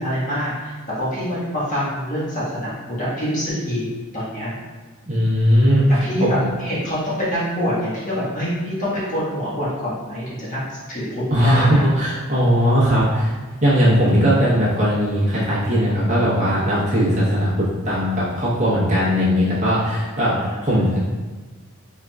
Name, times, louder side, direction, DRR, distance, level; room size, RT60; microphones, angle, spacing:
voice 1, 0.0-4.5 5.5-11.8 20.3-20.9, equal, 35° left, -9 dB, 1.4 m, -26 dB
voice 2, 5.1-5.9 6.2-6.5 11.3-13.3 13.6-20.3 20.6-21.1, equal, 35° right, -8 dB, 1.0 m, -18 dB
4.4 x 3.8 x 2.3 m, 1.3 s
head